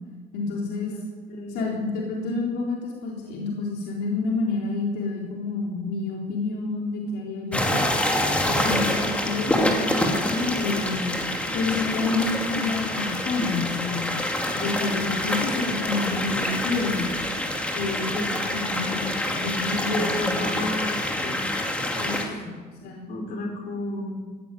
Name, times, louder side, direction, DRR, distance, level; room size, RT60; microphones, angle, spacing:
voice 1, 0.3-0.9 1.5-7.7 8.5-11.1 11.5-14.1 14.6-17.0 17.7-20.6 21.9-22.1 22.4-22.5 22.8-23.1, left 3 dB, 80° left, -2 dB, 4.1 m, -29 dB
voice 2, 1.3-1.8 18.1-18.2 19.9-21.4 23.1-24.1, left 2 dB, 55° left, 0 dB, 5.5 m, -32 dB
sound 1, 7.5-22.2, left 1 dB, 5° left, 2.4 m, -26 dB
18.5 x 16.0 x 9.4 m, 1.5 s
cardioid pair, 180°, 17 cm